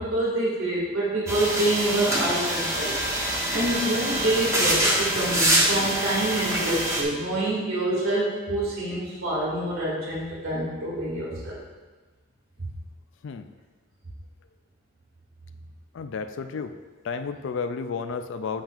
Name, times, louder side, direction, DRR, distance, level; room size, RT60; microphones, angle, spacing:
voice 1, 0.0-2.9 3.5-11.6, right 1 dB, 85° right, -6 dB, 2.2 m, -26 dB
sound 1, 1.3-7.0, right 1 dB, 15° right, 1.1 m, -25 dB
voice 2, 15.9-16.7 17.0-18.6, left 5 dB, 65° left, 9 dB, 0.4 m, -32 dB
8.9 x 7.2 x 2.5 m, 1.3 s
head